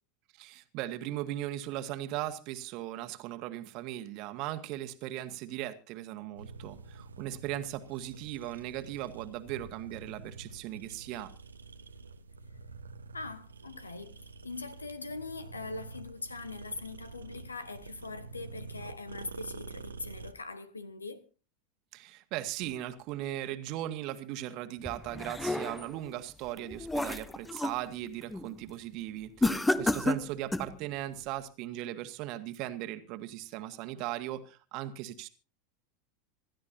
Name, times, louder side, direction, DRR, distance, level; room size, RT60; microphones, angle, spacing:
voice 1, 0.4-11.3 21.9-35.3, right 13 dB, 45° right, 1.5 m, -38 dB
sound 1, 6.4-20.3, right 4 dB, 75° right, 1.0 m, -47 dB
voice 2, 13.1-21.3, left 3 dB, 80° left, 1.3 m, -42 dB
sound 2, 24.9-26.0 26.5-27.8 28.2-28.5 29.4-30.8, left 2 dB, 5° left, 0.7 m, -31 dB
26.0 x 13.0 x 2.7 m
figure-of-eight pair, 85°, 0 cm